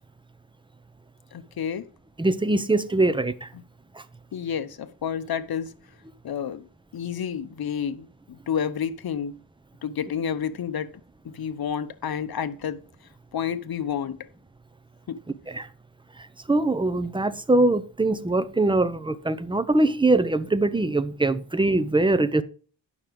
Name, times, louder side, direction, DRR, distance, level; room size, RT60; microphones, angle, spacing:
voice 1, 1.3-1.9 4.3-5.7 6.2-6.7 6.9-9.4 9.8-10.9 11.2-12.8 13.3-14.2 15.1-15.2, left 8 dB, 50° left, 0.9 m, -30 dB
voice 2, 2.2-3.5 15.5-15.7 16.5-22.4, right 2 dB, 10° right, 0.6 m, -22 dB
9.6 x 6.0 x 5.2 m
cardioid pair, 100°, 46 cm